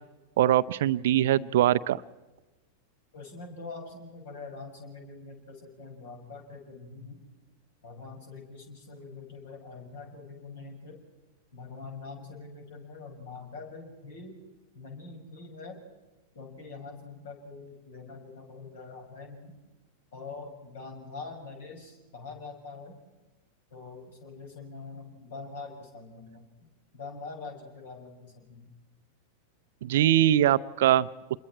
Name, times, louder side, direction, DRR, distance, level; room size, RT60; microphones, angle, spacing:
voice 1, 0.4-2.0 29.8-31.1, right 12 dB, 55° right, 15 dB, 0.6 m, -22 dB
voice 2, 3.1-7.2 7.8-11.0 11.5-14.4 14.7-15.8 16.3-19.6 20.1-23.0 23.7-28.7, left 4 dB, 55° left, 3 dB, 5.9 m, -44 dB
27.5 x 22.0 x 4.4 m, 1.1 s
figure-of-eight pair, 90°, 0 cm